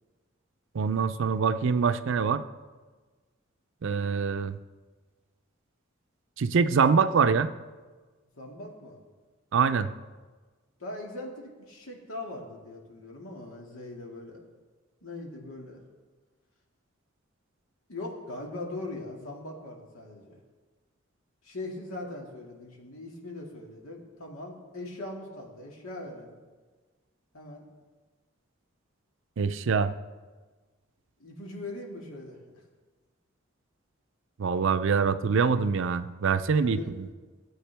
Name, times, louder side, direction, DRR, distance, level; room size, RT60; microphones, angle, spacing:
voice 1, 0.7-2.4 3.8-4.6 6.4-7.5 9.5-9.9 29.4-29.9 34.4-37.1, right 5 dB, 65° right, 12 dB, 0.5 m, -24 dB
voice 2, 8.4-9.0 10.8-14.4 15.0-15.8 17.9-20.4 21.4-26.4 27.3-27.6 31.2-32.4 36.6-36.9, left 2 dB, 90° left, 0 dB, 2.0 m, -40 dB
16.5 x 7.9 x 3.4 m, 1.3 s
head